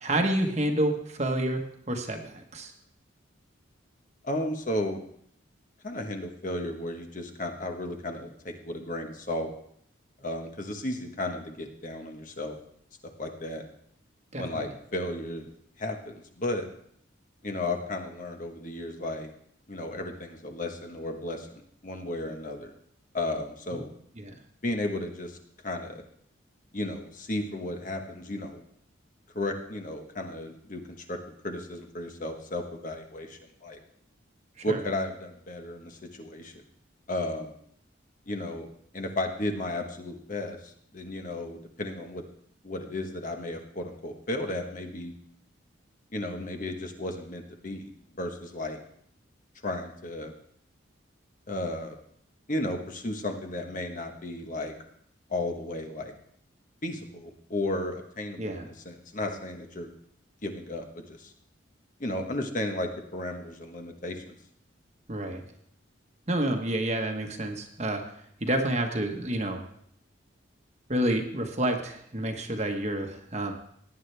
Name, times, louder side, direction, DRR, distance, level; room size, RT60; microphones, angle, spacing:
voice 1, 0.0-2.7 14.3-14.7 23.7-23.8 24.2-24.4 34.6-34.8 58.4-58.7 65.1-65.4 66.3-68.0 68.4-69.6 70.9-73.5, right 1 dB, 35° right, 4 dB, 1.2 m, -29 dB
voice 2, 4.2-5.0 5.8-9.5 10.2-12.5 13.2-13.6 14.4-15.5 15.8-16.7 17.4-19.3 19.7-22.7 23.1-23.9 24.6-25.4 25.6-26.0 26.7-28.6 29.3-31.2 31.4-33.8 34.6-36.6 37.1-37.5 38.3-38.7 38.9-42.2 42.6-45.1 46.1-47.9 48.2-48.8 49.6-50.3 51.5-52.0 52.5-54.7 55.3-56.1 56.8-59.9 60.4-61.3 62.0-64.3, left 1 dB, 40° left, 4 dB, 1.2 m, -34 dB
17.5 x 9.5 x 3.4 m, 0.67 s
head